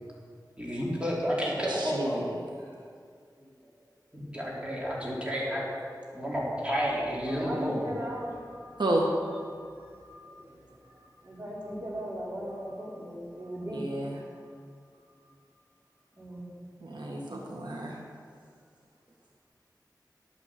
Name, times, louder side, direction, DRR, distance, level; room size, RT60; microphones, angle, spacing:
voice 1, 0.6-2.2 3.4-3.5 4.1-5.6 6.1-7.8 10.2-10.4, equal, 15° right, -6 dB, 4.0 m, -31 dB
voice 2, 1.7-2.4 8.8-9.1 13.7-14.2 16.8-18.0, right 1 dB, 90° right, -1 dB, 1.7 m, -31 dB
voice 3, 7.3-9.4 9.8-14.5 14.9-15.3 16.1-16.5, equal, 35° right, -5 dB, 4.4 m, -39 dB
11.5 x 9.1 x 7.7 m, 2.1 s
wide cardioid pair, 70°, 7 cm